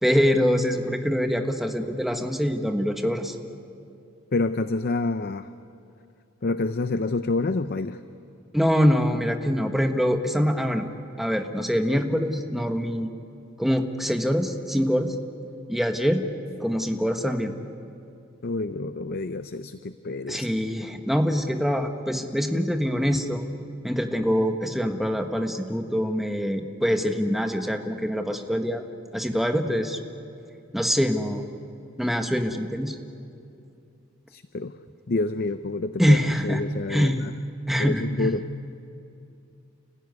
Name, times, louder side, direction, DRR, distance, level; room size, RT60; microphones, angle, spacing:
voice 1, 0.0-3.3 8.5-10.8 11.2-13.1 13.6-15.1 15.7-16.2 16.6-17.5 20.3-23.4 23.8-28.8 29.1-30.0 30.7-31.4 32.0-33.0 36.0-36.6 36.9-37.3 37.7-38.3, equal, ahead, 4 dB, 1.4 m, -24 dB
voice 2, 4.3-5.5 6.4-8.0 18.4-20.5 34.3-34.7 35.1-37.3 37.8-38.4, left 3 dB, 50° left, 11 dB, 0.6 m, -28 dB
30.0 x 16.0 x 9.6 m, 2.6 s
head